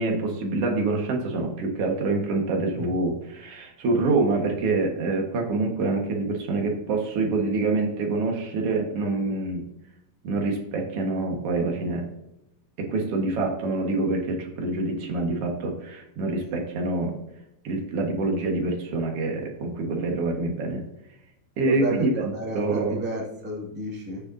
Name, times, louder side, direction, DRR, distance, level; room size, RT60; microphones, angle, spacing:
voice 1, 0.0-9.6 10.2-12.1 12.8-17.2 17.6-20.8 21.6-23.0, right 3 dB, 50° right, 1 dB, 1.9 m, -26 dB
voice 2, 21.6-24.2, right 1 dB, 5° right, -2 dB, 1.0 m, -32 dB
13.5 x 6.8 x 2.8 m, 0.84 s
omnidirectional pair, 4.5 m